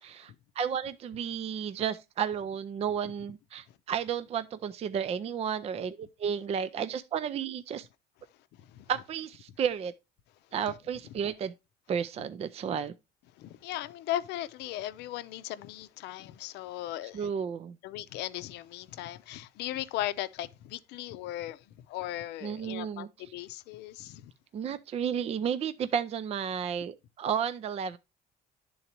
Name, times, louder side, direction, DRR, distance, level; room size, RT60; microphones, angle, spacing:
voice 1, 0.0-7.9 8.9-9.9 10.5-11.5 11.9-12.9 17.1-17.8 22.4-23.3 24.5-28.0, right 7 dB, 40° right, 0.4 m, -32 dB
voice 2, 13.4-17.3 17.8-21.6 21.9-24.3, left 14 dB, 85° left, 0.5 m, -37 dB
11.0 x 3.9 x 2.8 m
cardioid pair, 110°, 17 cm